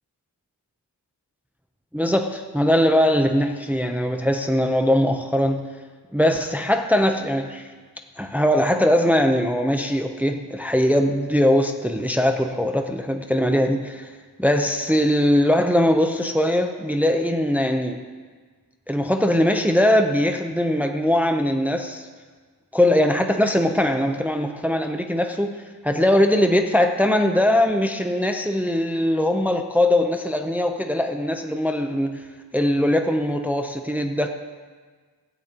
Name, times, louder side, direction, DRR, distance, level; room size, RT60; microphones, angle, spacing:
voice 1, 1.9-5.7 6.1-7.7 8.2-14.1 14.4-18.0 18.9-22.1 22.7-25.6 25.8-32.2 32.5-34.3, left 1 dB, 5° right, 5 dB, 0.7 m, -21 dB
15.5 x 14.0 x 2.9 m, 1.5 s
wide cardioid pair, 75°, 40 cm